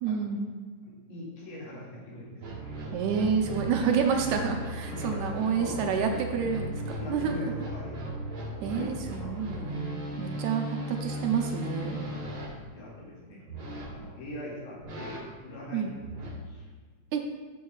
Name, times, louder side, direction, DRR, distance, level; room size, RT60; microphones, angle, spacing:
voice 1, 0.0-0.5 2.9-6.8 7.1-7.5 8.6-12.0 15.7-15.9 17.1-17.2, right 6 dB, 75° right, 3 dB, 1.9 m, -29 dB
voice 2, 0.8-3.0 4.9-5.8 7.0-7.9 8.4-9.4 10.0-10.4 11.9-12.3 12.7-13.5 13.9-16.2 16.5-16.7, left 1 dB, 80° left, -6 dB, 3.7 m, -42 dB
sound 1, 2.4-12.5 13.5-13.9 14.8-15.2 15.9-16.3, right 1 dB, 45° right, 3.4 m, -37 dB
12.0 x 6.4 x 2.4 m, 1.4 s
omnidirectional pair, 3.6 m